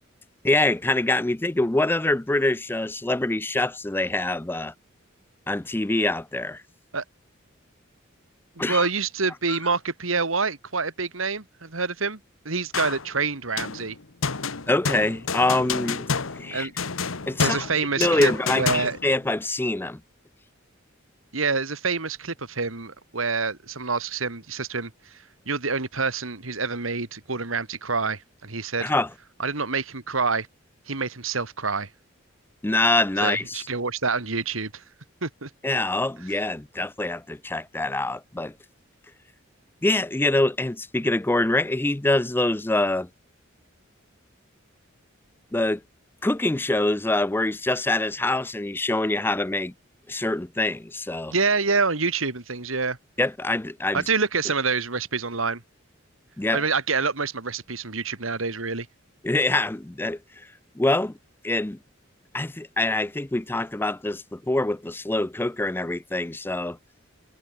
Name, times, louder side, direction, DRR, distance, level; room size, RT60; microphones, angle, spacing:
voice 1, 0.4-4.7 5.5-6.6 8.6-8.9 9.5-9.6 14.7-16.1 16.3-16.7 17.3-17.7 18.0-20.0 28.8-29.1 32.6-33.7 35.6-38.5 39.8-43.1 45.5-45.8 46.2-49.7 50.1-51.3 53.2-54.0 56.4-56.6 59.2-60.2 60.8-61.1 61.4-61.8 62.3-66.8, left 2 dB, 10° left, 0.5 m, -25 dB
voice 2, 8.6-12.2 12.4-14.0 16.5-16.7 17.4-19.0 21.3-25.2 25.5-28.9 29.4-30.5 30.9-31.9 33.2-34.8 35.2-35.5 51.3-53.0 53.9-55.6 56.5-58.9, right 4 dB, 90° right, 2.5 m, -27 dB
sound 1, 12.7-13.1 13.6-19.3, left 5 dB, 80° left, 1.3 m, -29 dB
head